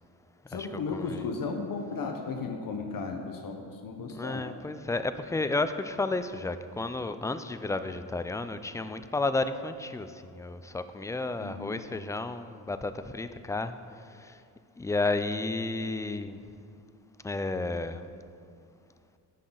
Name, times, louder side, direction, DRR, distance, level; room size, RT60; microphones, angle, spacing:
voice 1, 0.5-4.5 11.4-11.9, left 4 dB, 55° left, 3 dB, 1.0 m, -35 dB
voice 2, 4.1-13.7 14.2-14.4 14.8-16.4 17.2-18.1, left 3 dB, 10° left, 10 dB, 0.3 m, -32 dB
16.5 x 6.0 x 3.9 m, 2.4 s
cardioid pair, 105°, 40 cm